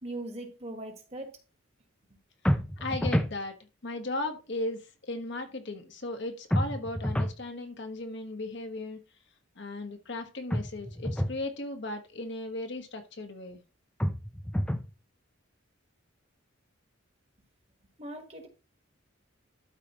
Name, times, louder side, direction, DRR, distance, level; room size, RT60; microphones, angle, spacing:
voice 1, 0.0-1.3 18.0-18.5, right 1 dB, 30° right, 1.5 m, -40 dB
sound 1, 2.4-3.4 6.5-7.4 10.5-11.4 14.0-14.9, equal, 5° left, 0.5 m, -28 dB
voice 2, 2.8-3.5 3.8-9.0 9.6-13.6, left 2 dB, 55° left, 1.3 m, -36 dB
12.5 x 5.0 x 3.0 m
head